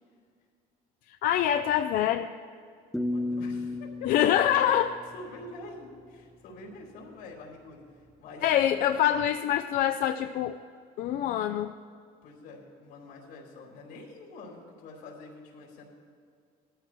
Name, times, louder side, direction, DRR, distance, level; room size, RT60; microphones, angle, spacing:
voice 1, 1.2-2.3 4.1-4.9 8.4-10.5 11.0-11.7, left 11 dB, 60° left, 7 dB, 0.4 m, -25 dB
sound 1, 2.9-5.9, left 2 dB, ahead, 0.4 m, -34 dB
voice 2, 3.1-4.1 4.6-4.8 5.1-7.9 8.2-8.7 12.2-15.8, left 3 dB, 85° left, -2 dB, 4.2 m, -46 dB
20.5 x 13.5 x 3.1 m, 2.2 s
cardioid pair, 145°, 17 cm